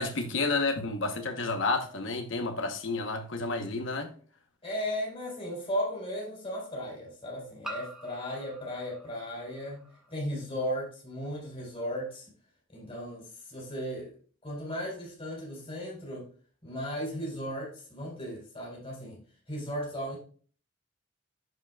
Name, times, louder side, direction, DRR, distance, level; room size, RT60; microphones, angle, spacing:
voice 1, 0.0-4.1, left 3 dB, 60° left, 0.9 m, -30 dB
sound 1, 3.7-3.8 5.4-5.5 7.6-10.1, right 1 dB, 5° right, 1.1 m, -46 dB
voice 2, 4.6-12.3 12.7-14.1 14.4-16.2 16.6-19.2 19.5-20.2, equal, 30° left, 3.4 m, -36 dB
10.5 x 4.9 x 2.3 m
head